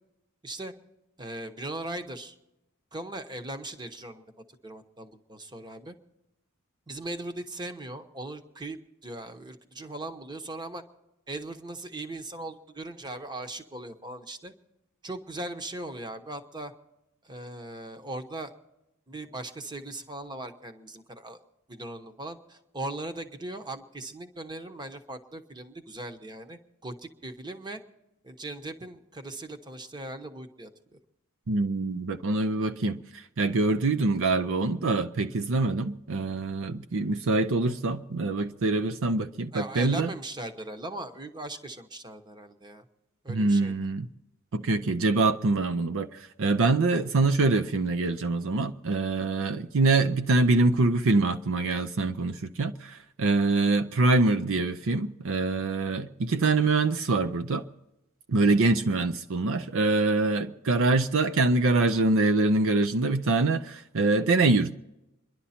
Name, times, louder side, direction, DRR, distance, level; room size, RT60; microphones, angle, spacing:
voice 1, 0.4-0.7 1.2-2.3 2.9-4.2 4.6-6.0 6.9-10.8 11.3-14.5 15.0-16.7 17.2-18.5 19.1-21.4 21.7-27.8 28.2-31.0 39.5-42.8 43.2-43.7, right 2 dB, 20° right, 1.0 m, -39 dB
voice 2, 31.5-40.1 43.3-44.1 44.5-57.6 58.3-64.8, right 3 dB, 65° right, 0.6 m, -25 dB
27.0 x 11.5 x 4.3 m
head